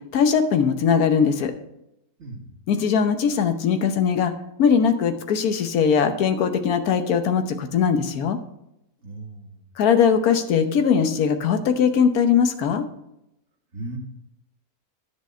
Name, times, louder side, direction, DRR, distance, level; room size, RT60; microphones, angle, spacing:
voice 1, 0.1-1.5 2.7-4.3 4.6-8.4 9.8-12.8, left 7 dB, 75° left, 8 dB, 1.4 m, -20 dB
voice 2, 2.2-2.5 9.0-9.6 13.7-14.0, right 2 dB, 50° right, 0 dB, 2.0 m, -36 dB
10.5 x 7.7 x 4.3 m, 0.85 s
omnidirectional pair, 1.6 m